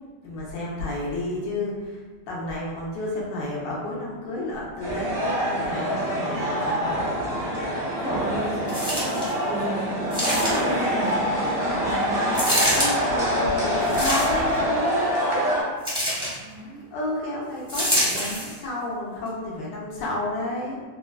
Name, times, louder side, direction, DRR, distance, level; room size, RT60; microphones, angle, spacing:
voice 1, 0.2-6.9 12.7-15.1 16.9-20.8, left 2 dB, 75° left, -4 dB, 1.4 m, -31 dB
sound 1, 4.6-5.1 6.5-11.7, right 1 dB, 80° right, 1.2 m, -37 dB
sound 2, 4.8-15.6, equal, 45° right, 0.7 m, -25 dB
voice 2, 7.7-12.4 16.4-16.8, right 1 dB, 35° left, -8 dB, 0.9 m, -34 dB
sound 3, 8.7-9.3 10.1-10.8 12.3-12.9 13.8-14.6 15.8-16.4 17.7-18.5 19.3-19.4, equal, 5° right, 0.5 m, -25 dB
4.1 x 2.2 x 2.2 m, 1.5 s
omnidirectional pair, 2.0 m